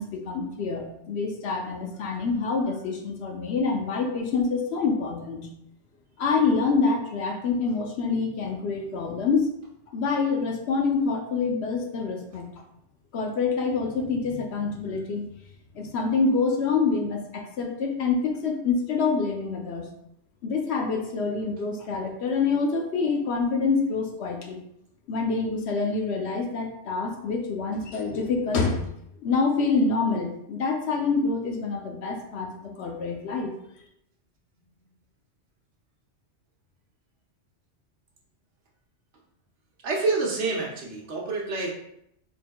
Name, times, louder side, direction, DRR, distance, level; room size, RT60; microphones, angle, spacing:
voice 1, 0.0-5.5 6.2-9.5 9.9-12.5 13.1-15.3 15.7-19.8 20.4-24.6 25.1-28.8 29.2-33.5, left 4 dB, 65° left, 2 dB, 0.8 m, -26 dB
voice 2, 39.8-41.7, right 3 dB, 70° right, -1 dB, 1.1 m, -27 dB
4.0 x 3.6 x 2.2 m, 0.76 s
omnidirectional pair, 1.3 m